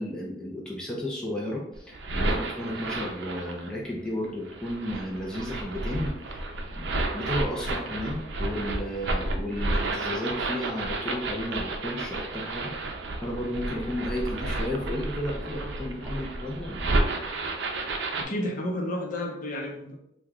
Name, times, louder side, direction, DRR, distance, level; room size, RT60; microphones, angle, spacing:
voice 1, 0.0-6.4 6.7-12.7 13.2-16.9, left 1 dB, 5° left, -4 dB, 0.5 m, -33 dB
sound 1, 1.7-3.7 4.5-18.2, right 2 dB, 80° right, 0.5 m, -31 dB
voice 2, 18.2-19.9, left 1 dB, 50° left, 0 dB, 0.7 m, -31 dB
3.0 x 2.2 x 3.5 m, 0.77 s
head